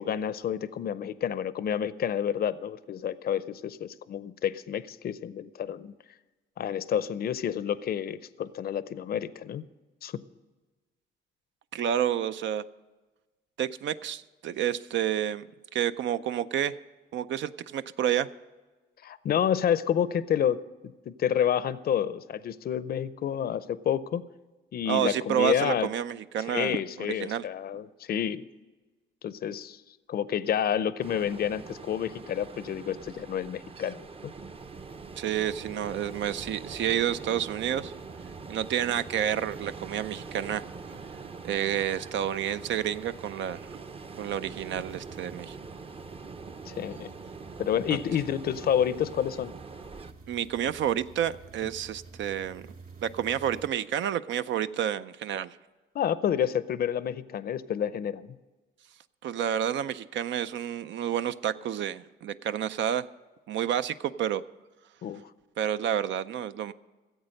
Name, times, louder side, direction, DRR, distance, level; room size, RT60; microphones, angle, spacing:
voice 1, 0.0-5.9 6.6-9.6 10.0-10.1 19.0-20.6 21.1-24.2 24.7-25.9 26.5-28.4 29.2-29.8 30.1-34.1 46.7-47.1 47.6-49.5 51.6-51.7 55.9-58.4 65.0-65.2, left 9 dB, 50° left, 16 dB, 0.5 m, -29 dB
voice 2, 11.7-12.6 13.6-15.4 15.7-16.7 17.1-18.3 24.9-27.4 35.2-37.9 38.5-41.0 41.4-43.8 44.2-45.6 50.3-52.7 53.0-55.6 59.2-63.1 63.5-64.4 65.6-66.7, right 10 dB, 70° right, 13 dB, 0.5 m, -29 dB
Ocean, 31.0-50.1, right 4 dB, 30° right, 0.7 m, -43 dB
sound 1, 34.5-53.7, right 4 dB, 45° right, 2.7 m, -52 dB
15.0 x 8.1 x 6.4 m, 1.3 s
cardioid pair, 90°, 20 cm